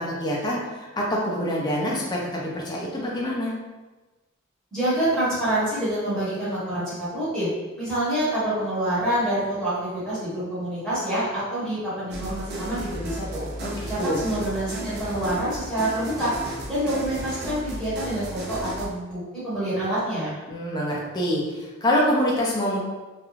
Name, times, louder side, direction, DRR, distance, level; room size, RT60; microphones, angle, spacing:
voice 1, 0.0-3.5 13.6-14.2 20.5-22.8, equal, 20° left, -4 dB, 0.5 m, -26 dB
voice 2, 4.7-7.5 7.8-13.5 13.9-16.3 16.7-20.3, right 1 dB, 5° left, -12 dB, 1.1 m, -27 dB
sound 1, 12.1-18.9, right 1 dB, 50° right, 0.4 m, -34 dB
2.4 x 2.2 x 3.0 m, 1.2 s
head